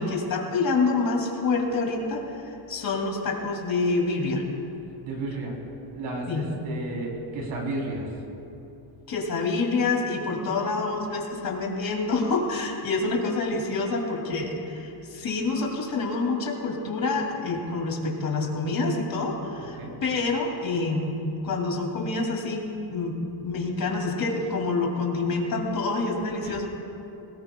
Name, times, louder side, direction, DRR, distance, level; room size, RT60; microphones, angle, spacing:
voice 1, 0.0-2.2 2.7-4.4 6.3-6.4 9.1-21.2 21.4-22.6 22.9-26.7, left 3 dB, 45° left, 0 dB, 2.6 m, -27 dB
voice 2, 5.0-5.6 5.9-8.1 19.6-19.9 26.4-26.6, right 2 dB, 90° right, -1 dB, 3.5 m, -33 dB
21.5 x 19.0 x 2.3 m, 2.8 s
cardioid pair, 160°, 47 cm